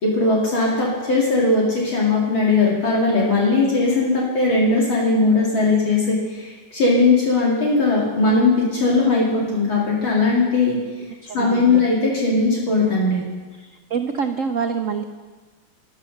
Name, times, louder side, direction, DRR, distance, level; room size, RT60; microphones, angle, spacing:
voice 1, 0.0-10.8 11.3-13.2, left 3 dB, 65° left, -4 dB, 3.3 m, -19 dB
voice 2, 11.2-11.8 13.6-15.0, right 6 dB, 90° right, 6 dB, 0.7 m, -26 dB
14.0 x 12.5 x 6.5 m, 1.3 s
omnidirectional pair, 2.4 m